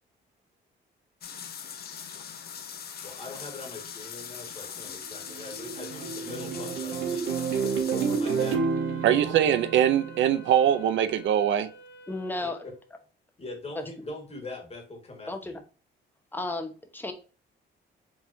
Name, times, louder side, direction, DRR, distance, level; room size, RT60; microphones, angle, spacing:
sound 1, 1.2-8.6, left 7 dB, 50° left, 0.7 m, -41 dB
voice 1, 3.0-7.3 7.6-8.6 8.9-9.2 12.4-12.7 13.4-15.6, left 2 dB, 30° left, 1.7 m, -41 dB
sound 2, 5.0-10.7, right 5 dB, 90° right, 0.9 m, -30 dB
Wind instrument woodwind instrument, 8.5-13.0, equal, 85° left, 1.3 m, -49 dB
voice 2, 9.0-11.7, right 10 dB, 70° right, 0.5 m, -22 dB
voice 3, 12.1-12.6 15.3-15.5 16.3-17.1, left 2 dB, 10° left, 0.9 m, -33 dB
4.9 x 3.5 x 2.7 m
cardioid pair, 90°, 20 cm